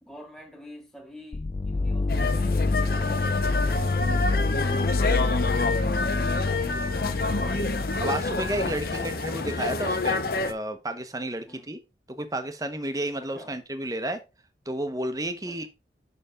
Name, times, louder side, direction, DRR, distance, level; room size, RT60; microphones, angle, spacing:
voice 1, 0.0-5.6 6.0-7.7 8.9-9.1 11.5-11.7 13.2-13.6 15.5-15.7, left 1 dB, 5° left, 1.6 m, -47 dB
sound 1, 1.3-9.0, left 3 dB, 30° left, 0.4 m, -27 dB
sound 2, 2.1-10.5, left 3 dB, 55° left, 0.8 m, -28 dB
voice 2, 8.0-11.8 12.1-14.2 14.7-15.7, right 1 dB, 20° right, 1.0 m, -31 dB
6.8 x 6.4 x 3.7 m
head